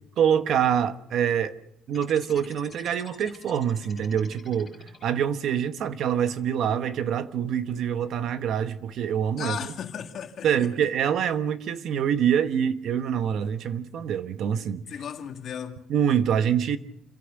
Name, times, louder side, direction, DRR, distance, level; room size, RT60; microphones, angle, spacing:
voice 1, 0.2-1.5 1.9-4.7 5.0-9.6 10.4-14.8 15.9-16.8, right 8 dB, 50° right, 1.1 m, -25 dB
sound 1, 1.9-5.4, left 4 dB, 20° left, 5.7 m, -49 dB
voice 2, 9.4-10.7 14.9-15.9, left 8 dB, 45° left, 2.2 m, -35 dB
27.0 x 16.0 x 6.6 m
cardioid pair, 180°, 0 cm